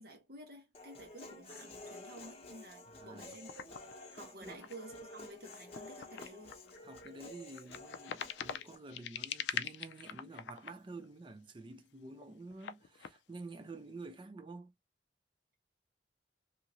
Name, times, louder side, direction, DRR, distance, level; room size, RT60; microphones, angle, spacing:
voice 1, 0.0-3.5 4.1-6.5, right 1 dB, 60° right, 1.1 m, -52 dB
Human voice, 0.7-8.8, left 2 dB, 35° left, 0.8 m, -51 dB
voice 2, 2.9-3.3 4.4-4.6 6.8-14.7, right 2 dB, 30° right, 0.4 m, -49 dB
sound 1, 3.3-11.5 11.8-13.2, left 8 dB, 80° left, 0.4 m, -44 dB
2.8 x 2.5 x 2.9 m
head